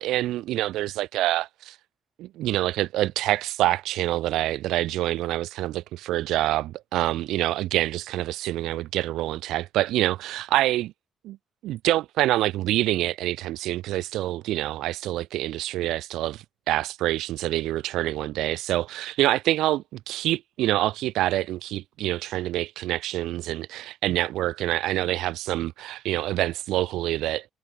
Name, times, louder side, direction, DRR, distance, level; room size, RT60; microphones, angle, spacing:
voice 1, 0.0-1.8 2.2-10.9 11.2-11.4 11.6-27.5, right 15 dB, 90° right, 0.5 m, -26 dB
cardioid pair, 90°, 0 cm